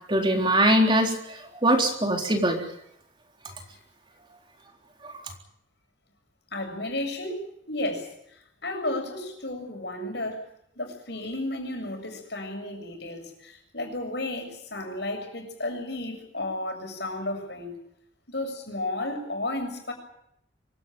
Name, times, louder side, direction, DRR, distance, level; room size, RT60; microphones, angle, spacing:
voice 1, 0.1-2.6 5.0-5.1, right 1 dB, 25° right, 1 dB, 3.9 m, -22 dB
voice 2, 6.5-8.1 8.6-10.4 10.8-17.8 18.3-19.9, left 1 dB, 65° left, 4 dB, 7.2 m, -33 dB
25.0 x 17.0 x 9.1 m, 0.74 s
head